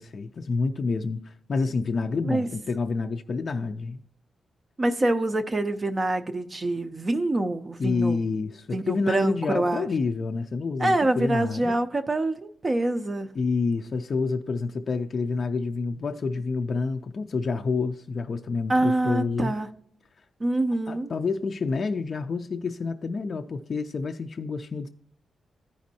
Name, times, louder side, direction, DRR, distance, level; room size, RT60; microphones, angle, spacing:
voice 1, 0.0-4.0 7.8-11.8 13.4-19.5 20.9-24.9, left 4 dB, 40° left, 0.4 m, -28 dB
voice 2, 4.8-8.2 8.7-9.9 10.8-13.4 18.7-19.7 20.4-21.1, right 2 dB, 25° right, 0.4 m, -25 dB
14.5 x 5.2 x 2.7 m
wide cardioid pair, 160°, 0 cm